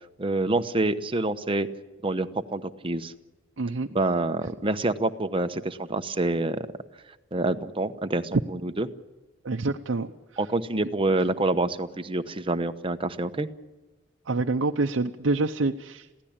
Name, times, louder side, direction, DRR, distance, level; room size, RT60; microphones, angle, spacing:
voice 1, 0.2-1.7 2.0-3.1 3.9-6.7 7.3-8.9 10.4-13.5, right 2 dB, 30° right, 9 dB, 0.9 m, -27 dB
voice 2, 3.6-3.9 9.4-10.1 14.3-16.2, right 3 dB, 85° right, 3 dB, 0.7 m, -27 dB
22.0 x 16.0 x 8.8 m, 1.1 s
head